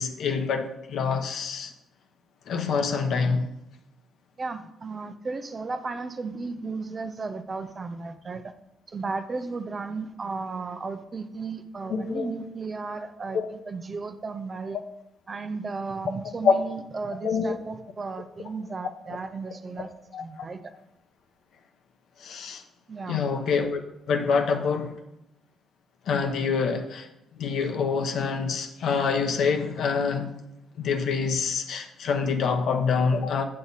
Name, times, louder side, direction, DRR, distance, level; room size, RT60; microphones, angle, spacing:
voice 1, 0.0-1.7 2.5-3.5 11.9-12.3 13.3-13.5 16.4-16.5 17.2-17.6 20.1-20.5 22.2-22.6 23.1-23.8 24.1-24.9 26.1-30.4 30.8-33.4, left 5 dB, 70° left, 1.0 m, -26 dB
voice 2, 4.4-8.5 8.9-14.8 15.3-19.9 20.2-20.7 22.9-23.3, right 4 dB, 35° right, 0.7 m, -34 dB
7.7 x 7.6 x 4.1 m
cardioid pair, 90°, 0 cm